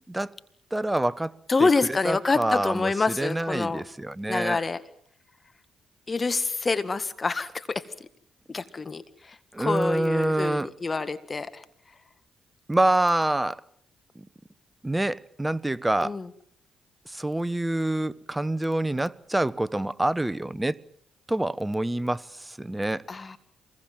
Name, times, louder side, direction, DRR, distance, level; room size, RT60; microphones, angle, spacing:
voice 1, 0.7-1.7 2.0-4.6 9.5-10.7 12.7-13.6 14.1-14.3 14.8-16.2 17.1-20.8 21.3-23.1, right 1 dB, 15° right, 1.1 m, -26 dB
voice 2, 1.5-3.8 4.3-4.8 6.1-7.8 8.5-11.6 16.0-16.3 23.1-23.4, left 3 dB, 35° left, 1.8 m, -27 dB
27.0 x 21.5 x 7.6 m
hypercardioid pair, 45°, 0 cm